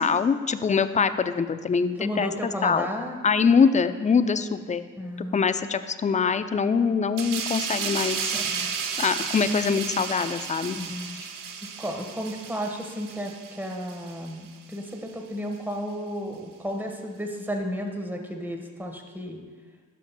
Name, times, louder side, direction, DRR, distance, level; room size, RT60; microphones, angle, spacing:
voice 1, 0.0-2.3 2.6-2.9 3.2-4.8 5.2-8.2 9.0-10.8 11.1-11.2, left 5 dB, 20° left, 11 dB, 0.4 m, -23 dB
voice 2, 2.0-3.2 5.0-5.4 8.3-8.7 10.7-11.2 11.8-19.4, equal, 5° right, 3 dB, 1.3 m, -33 dB
sound 1, 7.2-14.3 14.7-14.9, right 6 dB, 70° right, 0.7 m, -33 dB
12.0 x 5.7 x 2.2 m, 1.5 s
supercardioid pair, 55°, 34 cm